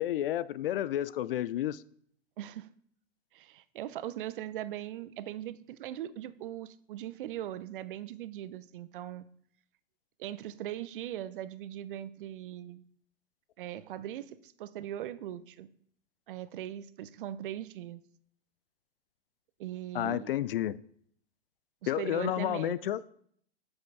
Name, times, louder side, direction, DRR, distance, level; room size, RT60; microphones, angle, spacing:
voice 1, 0.0-1.8 19.9-20.8 21.9-23.0, left 12 dB, 60° left, 0.5 m, -31 dB
voice 2, 2.4-2.7 3.3-9.3 10.2-12.8 13.6-15.7 16.3-18.0 19.6-20.3 21.8-22.9, right 12 dB, 55° right, 0.6 m, -40 dB
8.4 x 6.3 x 4.7 m
figure-of-eight pair, 110°, 32 cm